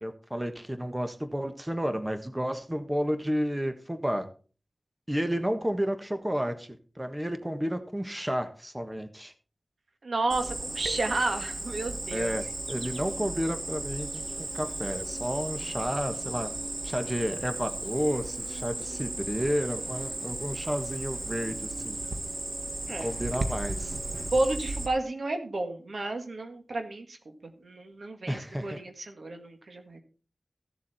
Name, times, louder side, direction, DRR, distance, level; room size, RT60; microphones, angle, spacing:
voice 1, 0.0-4.3 5.1-6.7 7.0-9.3 12.1-16.5 16.8-22.0 23.0-23.9 28.3-28.8, equal, 15° right, 7 dB, 1.4 m, -31 dB
voice 2, 10.0-12.4 22.9-23.1 24.3-27.2 27.6-30.0, right 2 dB, 85° right, 5 dB, 1.9 m, -31 dB
Cricket, 10.3-24.9, right 2 dB, 55° right, 1.4 m, -35 dB
15.5 x 7.4 x 4.3 m, 0.38 s
wide cardioid pair, 75°, 0 cm